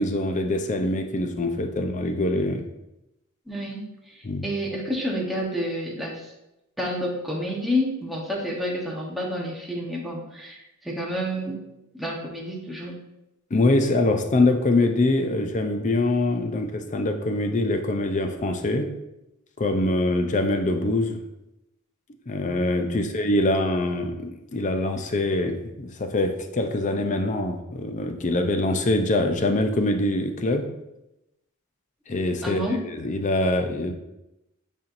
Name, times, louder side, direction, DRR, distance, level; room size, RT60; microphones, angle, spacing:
voice 1, 0.0-2.6 4.2-4.4 13.5-18.9 19.6-21.2 22.3-30.7 32.1-33.9, left 2 dB, 35° left, 6 dB, 0.5 m, -24 dB
voice 2, 3.5-6.3 6.8-11.6 11.9-13.0 22.8-23.0 32.4-32.9, equal, ahead, -3 dB, 1.0 m, -29 dB
8.5 x 4.4 x 2.6 m, 0.91 s
head